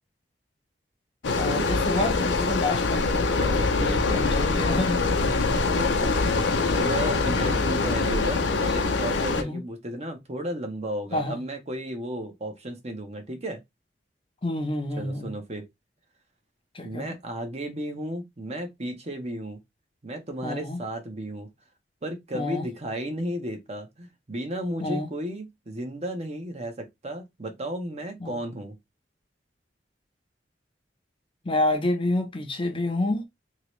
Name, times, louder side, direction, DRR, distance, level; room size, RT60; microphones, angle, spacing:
sound 1, 1.2-9.4, left 3 dB, 90° left, 0.6 m, -24 dB
voice 1, 1.4-5.0 7.4-7.5 9.3-9.6 11.1-11.4 14.4-15.3 16.7-17.1 20.4-20.8 22.3-22.7 24.8-25.1 28.2-28.4 31.4-33.2, left 2 dB, 30° left, 0.6 m, -28 dB
voice 2, 3.4-4.4 5.3-13.6 14.9-15.7 16.8-19.6 20.0-21.5 22.0-28.8, right 1 dB, 40° right, 0.8 m, -34 dB
2.9 x 2.9 x 3.1 m
head